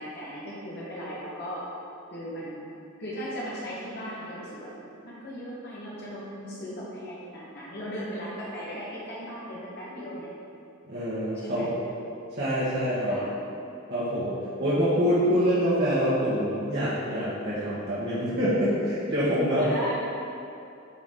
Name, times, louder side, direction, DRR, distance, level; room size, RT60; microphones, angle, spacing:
voice 1, 0.0-1.6 2.1-2.6 3.0-4.7 5.0-10.3 11.3-11.8 13.1-13.4 19.5-19.9, equal, 55° left, -7 dB, 1.4 m, -37 dB
voice 2, 10.9-11.7 12.3-13.2 13.9-19.7, equal, 55° right, -11 dB, 1.7 m, -26 dB
9.8 x 4.8 x 3.8 m, 2.6 s
head